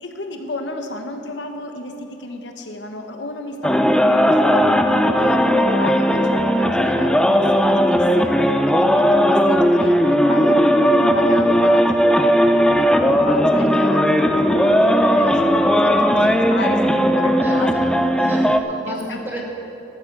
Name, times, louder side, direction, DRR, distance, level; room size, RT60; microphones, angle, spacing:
voice 1, 0.0-15.5 15.8-17.7 18.3-18.4 18.8-19.4, left 2 dB, 85° left, 5 dB, 1.1 m, -33 dB
sound 1, 3.6-18.6, equal, 5° left, 0.4 m, -16 dB
voice 2, 17.4-19.4, equal, 10° right, -3 dB, 2.2 m, -34 dB
13.5 x 8.6 x 6.6 m, 2.9 s
head